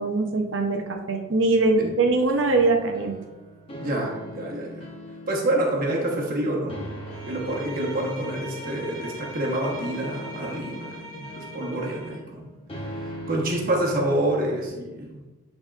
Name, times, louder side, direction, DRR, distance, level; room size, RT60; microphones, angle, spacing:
voice 1, 0.0-3.2, right 3 dB, 65° right, 4 dB, 0.8 m, -22 dB
sound 1, 2.5-14.7, equal, 25° left, 1.0 m, -41 dB
voice 2, 3.8-4.9 5.3-6.8 7.3-12.5 13.3-15.2, right 1 dB, 45° right, -3 dB, 1.2 m, -27 dB
Bowed string instrument, 7.1-12.3, equal, 85° right, 1.2 m, -40 dB
10.5 x 4.0 x 2.5 m, 1.2 s
head